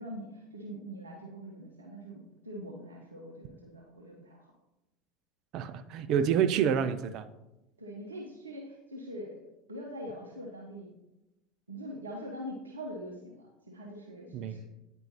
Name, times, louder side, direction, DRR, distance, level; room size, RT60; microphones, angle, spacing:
voice 1, 0.0-4.5 7.8-9.4 9.7-10.9 11.7-14.6, equal, 85° right, -2 dB, 0.8 m, -43 dB
voice 2, 5.5-7.3 14.3-14.6, right 8 dB, 50° right, 12 dB, 0.5 m, -28 dB
9.0 x 5.4 x 2.9 m, 0.96 s
figure-of-eight pair, 75°, 0 cm